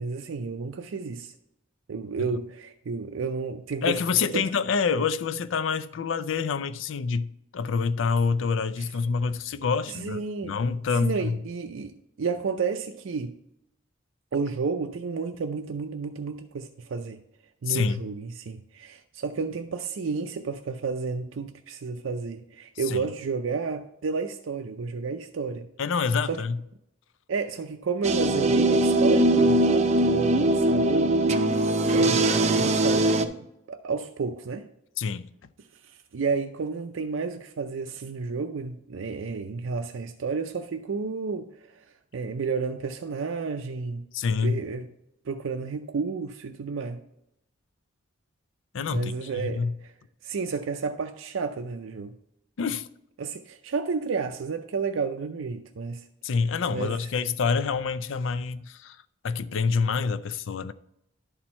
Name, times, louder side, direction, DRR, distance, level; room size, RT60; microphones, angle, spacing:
voice 1, 0.0-1.3 1.9-4.0 4.3-4.5 8.8-8.9 9.9-10.6 11.0-11.9 12.2-13.4 14.3-17.2 17.6-25.7 26.3-26.4 27.3-31.1 31.9-34.7 35.8-41.5 41.8-41.9 42.1-44.1 44.4-44.9 45.3-47.0 48.9-49.9 50.2-52.1 53.2-56.1 56.7-57.0, right 5 dB, 85° right, 0.5 m, -31 dB
voice 2, 3.8-11.4 17.7-18.0 22.9-23.0 25.8-26.6 35.0-35.5 44.1-44.6 48.7-49.7 52.6-52.9 56.2-59.0 59.2-60.7, left 5 dB, 75° left, 0.4 m, -27 dB
sound 1, 28.0-33.3, right 1 dB, 35° right, 0.5 m, -21 dB
11.0 x 4.4 x 4.3 m
head